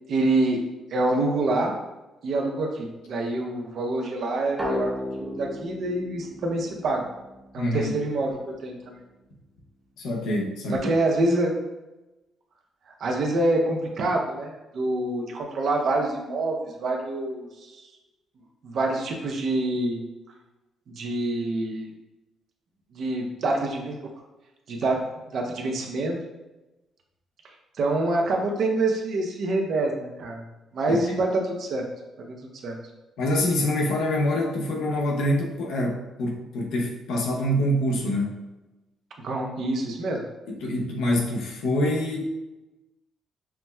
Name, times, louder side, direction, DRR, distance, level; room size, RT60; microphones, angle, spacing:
voice 1, 0.1-0.6 0.9-1.7 2.2-4.9 5.2-7.1 7.5-9.0 10.7-11.6 13.0-17.8 18.6-20.0 20.9-21.9 22.9-24.0 24.7-26.2 27.8-30.4 30.7-31.8 32.3-32.4 32.6-32.8 39.2-40.2, right 2 dB, 65° right, 1 dB, 0.7 m, -26 dB
sound 1, 4.6-8.1, left 1 dB, 10° right, 0.9 m, -34 dB
voice 2, 7.6-8.0 10.0-10.9 30.9-31.2 33.2-38.4 40.5-42.2, left 1 dB, 85° left, 0 dB, 0.7 m, -25 dB
5.7 x 2.1 x 2.2 m, 1.0 s
cardioid pair, 90°, 0 cm